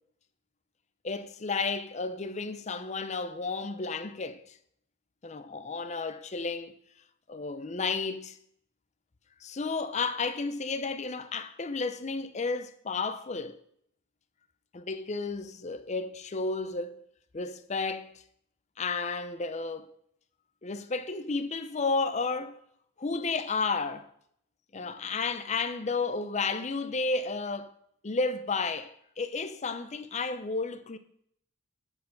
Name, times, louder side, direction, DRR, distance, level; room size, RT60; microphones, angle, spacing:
voice 1, 1.0-4.6 5.2-6.7 7.3-8.4 9.4-13.6 14.7-17.1 17.3-18.1 18.8-19.9 20.6-22.6 23.0-24.1 24.7-27.7 28.0-31.0, left 4 dB, 35° left, 0.6 m, -32 dB
9.1 x 6.8 x 5.2 m
head